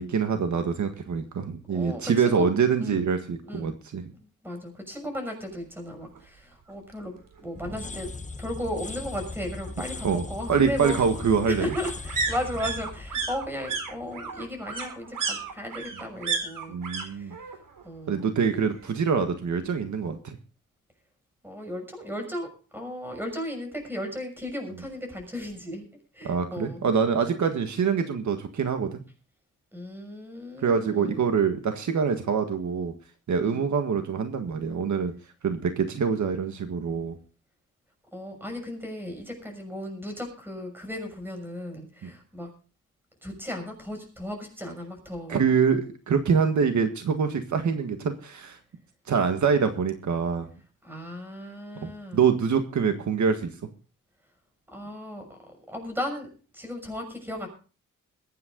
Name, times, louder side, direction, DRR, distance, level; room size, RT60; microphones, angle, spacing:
voice 1, 0.0-4.1 10.0-10.2 10.5-11.7 16.7-17.4 18.1-20.4 26.2-29.0 30.6-32.9 33.3-35.1 35.4-37.2 42.0-42.1 45.3-48.6 49.1-50.5 51.8-53.5, right 6 dB, 65° right, 6 dB, 1.7 m, -25 dB
voice 2, 1.7-2.5 2.8-3.0 3.5-3.7 4.1-8.1 8.4-11.0 11.5-16.8 17.1-17.3 17.8-18.3 21.4-25.8 26.1-26.8 29.7-31.3 33.4-33.6 38.1-42.5 43.2-45.4 50.8-52.2 54.7-55.4 55.7-56.3 56.5-57.5, left 1 dB, 5° right, 4 dB, 6.3 m, -35 dB
sound 1, 6.2-6.3 6.6-6.7 7.0-8.0 9.3-17.1 17.3-17.9 18.1-19.2 19.5-19.6, right 4 dB, 85° right, 4.2 m, -34 dB
sound 2, 7.5-14.4, left 3 dB, 25° left, 1.2 m, -39 dB
22.0 x 9.5 x 3.8 m, 0.38 s
wide cardioid pair, 160°, 32 cm